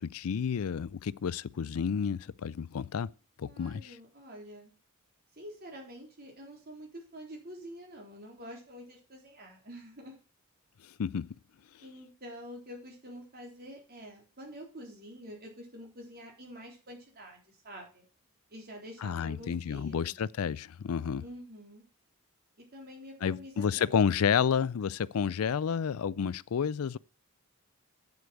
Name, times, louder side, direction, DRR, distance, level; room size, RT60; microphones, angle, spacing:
voice 1, 0.0-3.1 3.4-3.9 11.0-11.3 19.0-21.2 23.2-27.0, left 7 dB, 75° left, 0.4 m, -30 dB
voice 2, 3.4-4.7 5.3-10.2 11.8-18.1 18.5-20.1 21.2-21.8 22.6-24.3, equal, 45° right, 3.9 m, -47 dB
8.4 x 7.9 x 6.4 m
head